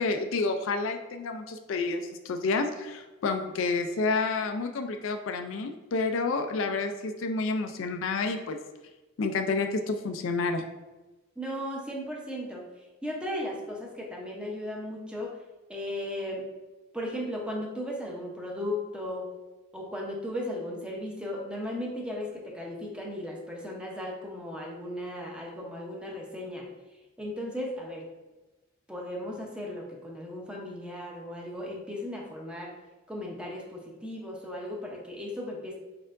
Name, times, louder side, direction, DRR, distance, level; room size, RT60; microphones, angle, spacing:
voice 1, 0.0-8.6 9.2-10.6, left 3 dB, 70° left, 5 dB, 0.4 m, -29 dB
voice 2, 11.4-12.6 13.0-15.4 15.7-16.4 16.9-19.3 19.7-26.7 27.2-28.1 28.9-32.8 33.1-35.7, left 1 dB, 5° right, -2 dB, 0.7 m, -36 dB
4.7 x 4.3 x 2.5 m, 1.1 s
head